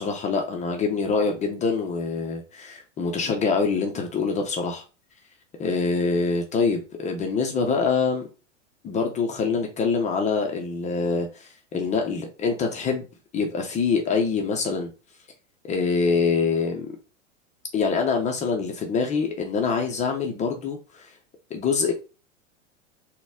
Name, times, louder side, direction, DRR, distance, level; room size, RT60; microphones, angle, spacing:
voice 1, 0.0-4.8 5.6-8.3 8.8-13.1 13.3-14.9 15.6-16.9 17.7-21.1 21.5-21.9, left 5 dB, 20° left, 0.5 m, -25 dB
4.0 x 2.1 x 3.5 m
figure-of-eight pair, 95°, 37 cm